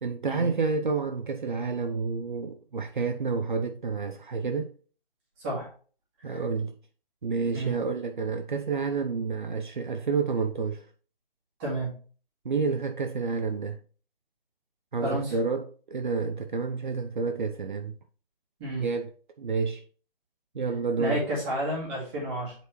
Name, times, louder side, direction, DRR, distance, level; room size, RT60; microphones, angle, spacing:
voice 1, 0.0-4.7 6.2-6.7 7.2-10.9 12.4-13.8 14.9-18.0 18.8-19.1 19.4-19.8 20.5-21.2, right 4 dB, 55° right, 0.7 m, -29 dB
voice 2, 5.4-5.7 6.3-6.4 7.5-7.8 11.6-11.9 15.0-15.4 18.6-18.9 21.0-22.5, right 1 dB, 10° right, 2.1 m, -31 dB
8.3 x 4.4 x 3.1 m
hypercardioid pair, 170°, 29 cm